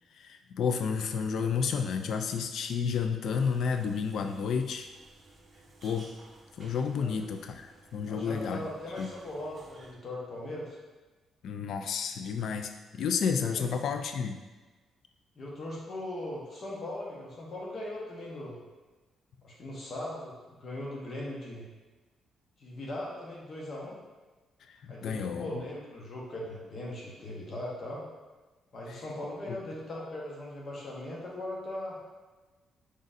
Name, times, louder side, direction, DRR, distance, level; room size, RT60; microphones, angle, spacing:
voice 1, 0.1-4.9 5.8-6.1 6.6-8.7 9.0-9.1 11.4-14.4 24.7-25.5 28.9-29.0 29.5-29.6, left 6 dB, 70° left, 7 dB, 0.3 m, -31 dB
sound 1, 3.3-9.9, right 2 dB, 40° right, 0.7 m, -56 dB
voice 2, 8.1-10.8 13.5-13.7 15.4-18.6 19.4-21.6 22.6-24.0 24.9-28.0 28.7-32.0, left 1 dB, 50° left, -4 dB, 1.0 m, -39 dB
4.9 x 4.0 x 2.6 m, 1.3 s
cardioid pair, 90°, 0 cm